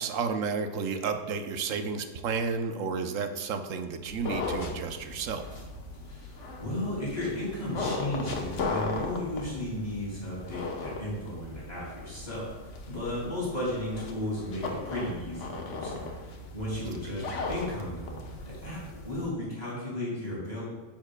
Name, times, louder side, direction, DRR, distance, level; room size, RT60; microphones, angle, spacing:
voice 1, 0.0-5.5, right 5 dB, 85° right, 7 dB, 1.1 m, -31 dB
sound 1, 4.0-19.3, left 3 dB, 70° left, 1.3 m, -37 dB
voice 2, 6.0-20.6, left 1 dB, 30° left, -7 dB, 2.6 m, -35 dB
9.7 x 7.3 x 2.2 m, 1.3 s
omnidirectional pair, 1.3 m